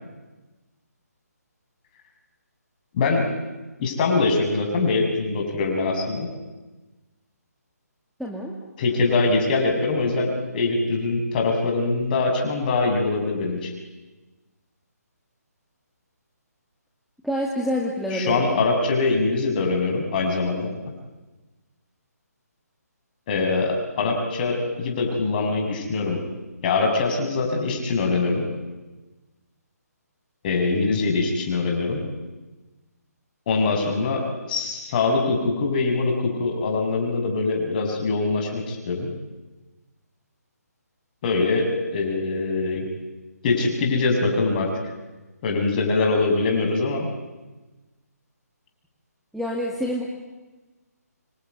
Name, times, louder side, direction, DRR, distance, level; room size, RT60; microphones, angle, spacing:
voice 1, 2.9-3.3 3.8-6.3 8.8-10.3 10.5-13.7 18.1-20.7 23.3-26.2 26.6-28.4 30.4-32.0 33.5-34.2 34.5-39.1 41.2-42.9 43.4-44.7 45.4-47.1, left 3 dB, 30° left, 2 dB, 6.5 m, -23 dB
voice 2, 8.2-8.6 17.2-18.4 49.3-50.1, equal, ahead, -2 dB, 2.1 m, -27 dB
26.5 x 22.5 x 9.6 m, 1.2 s
figure-of-eight pair, 155°, 9 cm